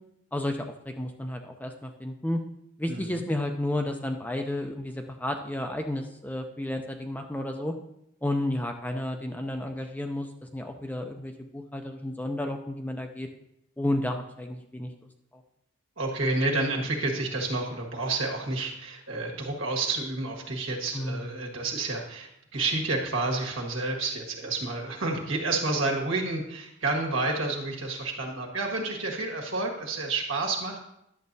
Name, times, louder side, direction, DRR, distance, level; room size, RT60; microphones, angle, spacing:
voice 1, 0.3-2.4 2.8-7.7 8.2-13.3 13.8-14.9 20.9-21.2, left 1 dB, 10° left, 4 dB, 0.5 m, -32 dB
voice 2, 16.0-30.8, right 3 dB, 85° right, 0 dB, 1.6 m, -30 dB
10.5 x 7.3 x 2.7 m, 0.78 s
head